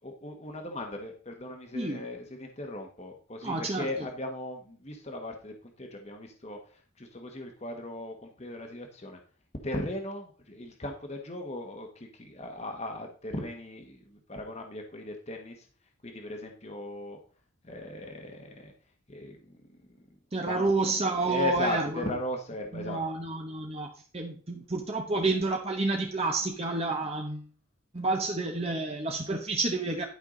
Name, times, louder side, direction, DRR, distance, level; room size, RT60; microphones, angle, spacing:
voice 1, 0.0-9.2 9.6-15.7 16.0-17.2 17.6-18.7 19.1-19.5 19.9-20.0 20.5-20.7 21.3-23.0, left 1 dB, 30° left, 3 dB, 1.3 m, -37 dB
voice 2, 1.7-2.0 3.4-3.9 20.3-22.1 22.7-27.5 27.9-30.0, right 3 dB, 30° right, 2 dB, 1.0 m, -29 dB
11.5 x 5.7 x 3.9 m, 0.41 s
head